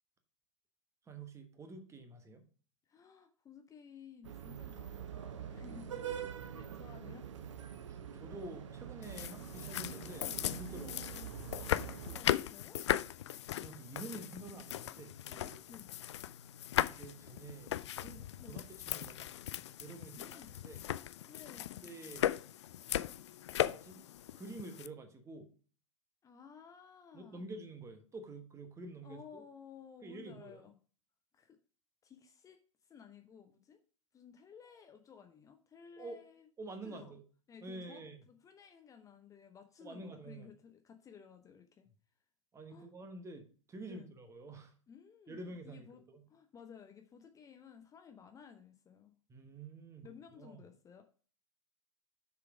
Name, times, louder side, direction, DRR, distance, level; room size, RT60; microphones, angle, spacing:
voice 1, 1.0-2.4 5.5-5.8 7.0-7.1 7.9-11.2 13.5-15.6 17.0-19.3 19.8-20.8 21.8-22.3 23.6-24.0 24.3-25.5 27.1-29.4 30.0-30.6 36.0-36.2 36.6-37.2 37.6-38.2 39.8-40.5 42.5-44.7 45.3-46.2 49.3-50.1 50.4-50.6, right 2 dB, 15° right, 7 dB, 1.3 m, -49 dB
voice 2, 2.9-6.0 6.3-7.3 10.7-12.8 15.7-15.9 18.4-18.6 20.2-20.5 21.3-21.9 26.2-27.5 29.0-30.7 31.3-31.6 32.0-33.8 34.1-36.5 36.8-37.2 37.5-41.9 42.7-42.9 43.9-44.1 44.9-45.4 45.6-46.0 46.3-49.2 50.0-51.0, left 7 dB, 20° left, 6 dB, 0.8 m, -56 dB
sound 1, 4.2-12.2, right 9 dB, 65° right, 0.8 m, -45 dB
sound 2, 9.0-24.9, left 12 dB, 60° left, 0.4 m, -38 dB
6.8 x 4.9 x 4.9 m, 0.40 s
figure-of-eight pair, 95°, 17 cm